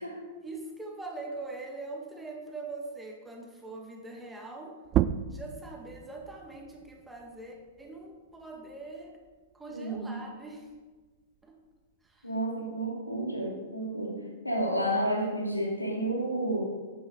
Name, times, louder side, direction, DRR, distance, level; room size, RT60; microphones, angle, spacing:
voice 1, 0.4-4.8 5.3-9.2 9.5-10.7 11.4-11.6 12.0-12.3, right 2 dB, 10° right, 1 dB, 2.0 m, -42 dB
sound 1, 4.9-10.1 10.5-12.3, right 11 dB, 30° right, 0.4 m, -35 dB
voice 2, 9.7-10.2 12.2-16.6, right 1 dB, 90° left, -1 dB, 2.6 m, -31 dB
11.0 x 9.0 x 5.1 m, 1.3 s
figure-of-eight pair, 105°, 0 cm